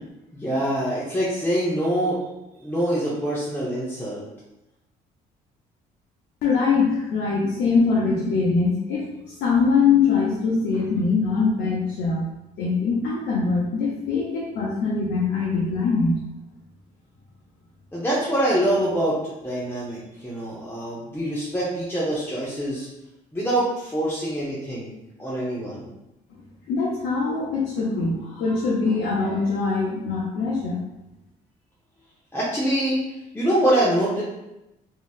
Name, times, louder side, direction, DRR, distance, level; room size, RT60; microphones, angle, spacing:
voice 1, 0.3-2.2 2.6-4.2 17.9-22.9 23.3-24.9 25.2-25.9 32.3-33.0 33.3-34.2, right 1 dB, 10° left, -8 dB, 0.8 m, -24 dB
voice 2, 6.4-12.3 12.6-16.2 26.7-30.8, left 4 dB, 70° left, -4 dB, 0.7 m, -23 dB
3.0 x 2.7 x 2.3 m, 0.93 s
supercardioid pair, 75°, 18 cm